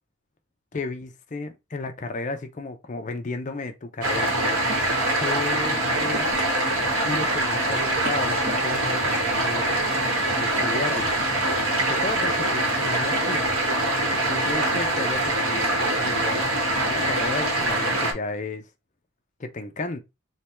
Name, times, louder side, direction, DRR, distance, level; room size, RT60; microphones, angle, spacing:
voice 1, 0.7-4.3 5.2-6.3 7.0-9.6 10.3-11.1 11.7-13.5 14.1-16.5 16.9-18.7 19.4-20.0, left 3 dB, 35° left, 0.5 m, -33 dB
sound 1, 4.0-18.1, right 1 dB, 80° right, 1.2 m, -24 dB
3.3 x 2.2 x 4.2 m
head